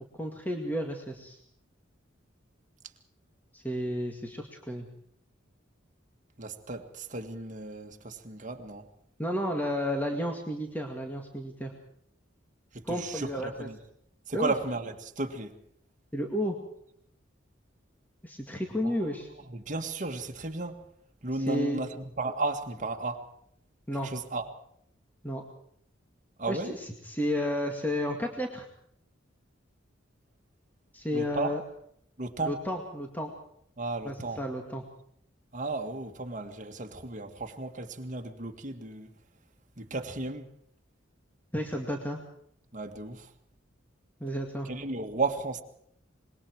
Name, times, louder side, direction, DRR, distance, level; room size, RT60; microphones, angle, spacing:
voice 1, 0.2-1.4 3.5-4.9 9.2-11.7 12.8-13.7 14.3-14.5 16.1-16.6 18.2-19.3 21.3-21.8 23.9-24.1 25.2-25.4 26.5-28.6 30.9-31.6 32.4-33.3 34.0-34.8 41.5-42.2 44.2-44.7, equal, 10° left, 2.1 m, -32 dB
voice 2, 6.4-8.9 12.7-13.8 14.3-15.6 18.8-18.9 19.5-20.8 21.2-23.2 24.0-24.5 26.4-26.7 31.1-31.6 32.2-32.6 33.8-34.4 35.5-39.1 39.8-40.4 42.7-43.3 44.7-45.6, right 3 dB, 40° right, 1.9 m, -34 dB
25.5 x 21.5 x 4.7 m
head